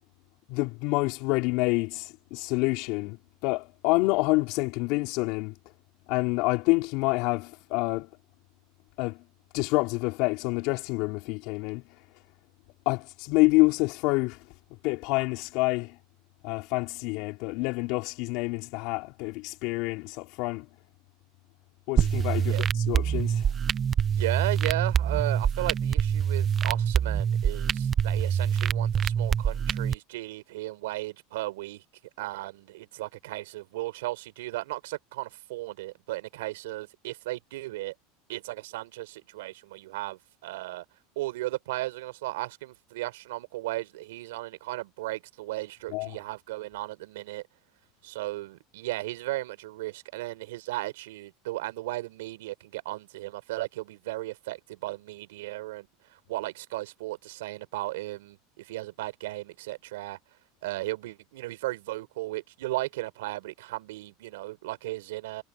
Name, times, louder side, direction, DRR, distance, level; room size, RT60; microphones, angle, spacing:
voice 1, 0.5-5.5 6.1-8.1 9.0-9.2 9.5-11.8 12.9-14.4 14.8-16.0 16.4-20.7 21.9-23.5 45.9-46.2, left 24 dB, 60° left, 4.3 m, -27 dB
sound 1, 22.0-30.0, right 8 dB, 30° right, 0.7 m, -25 dB
voice 2, 24.2-31.8 32.2-37.9 38.3-40.8 41.2-47.4 48.0-60.2 60.6-65.4, right 18 dB, 85° right, 4.7 m, -35 dB
supercardioid pair, 125°, 0 cm